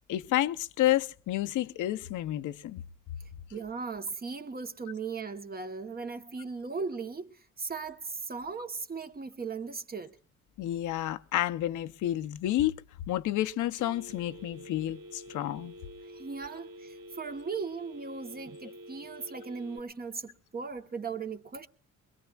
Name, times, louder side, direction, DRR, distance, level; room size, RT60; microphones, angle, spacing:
voice 1, 0.1-2.8 10.6-12.7 13.1-15.7, left 13 dB, 80° left, 0.7 m, -30 dB
voice 2, 3.5-10.2 16.1-21.7, right 5 dB, 30° right, 1.0 m, -38 dB
Telephone, 13.8-19.8, equal, 75° right, 2.0 m, -48 dB
23.0 x 21.0 x 2.4 m
cardioid pair, 90°, 30 cm